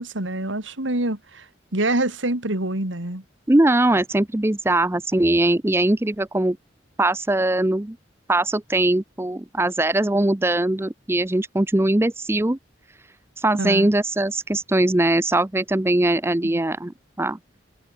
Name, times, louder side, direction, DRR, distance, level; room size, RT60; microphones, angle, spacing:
voice 1, 0.0-1.5 1.7-3.2 13.6-13.9 16.4-16.6, right 1 dB, 90° right, 3.7 m, -26 dB
voice 2, 3.5-6.6 7.0-8.0 8.3-12.6 13.4-17.4, right 1 dB, 15° right, 0.5 m, -21 dB
head